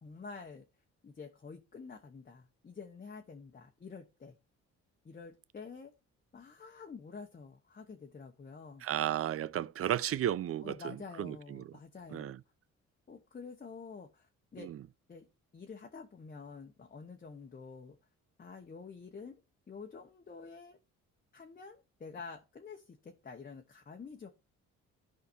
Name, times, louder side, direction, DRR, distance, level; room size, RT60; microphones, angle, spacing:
voice 1, 0.0-0.6 1.0-4.4 5.0-5.9 6.3-8.9 10.6-12.3 13.1-14.7 15.1-15.3 15.5-18.0 18.4-19.4 19.7-20.8 21.3-24.3, left 5 dB, 30° left, 1.1 m, -48 dB
voice 2, 8.8-11.7 12.1-12.4 14.6-14.8, right 11 dB, 50° right, 0.5 m, -34 dB
15.0 x 5.0 x 2.6 m
cardioid pair, 90°, 30 cm